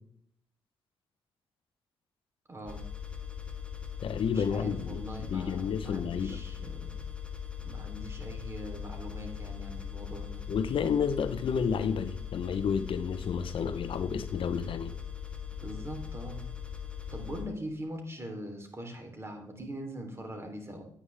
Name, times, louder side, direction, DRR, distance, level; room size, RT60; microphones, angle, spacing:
voice 1, 2.5-2.8 4.3-7.0 7.6-10.4 15.6-16.5 17.1-20.8, right 1 dB, 30° right, 3 dB, 3.3 m, -42 dB
sound 1, 2.7-17.4, left 8 dB, 10° left, 1.9 m, -40 dB
voice 2, 4.0-5.0 5.3-6.4 10.5-14.9, left 6 dB, 65° left, 11 dB, 0.8 m, -30 dB
10.0 x 9.3 x 3.4 m, 0.65 s
supercardioid pair, 60°, 9 cm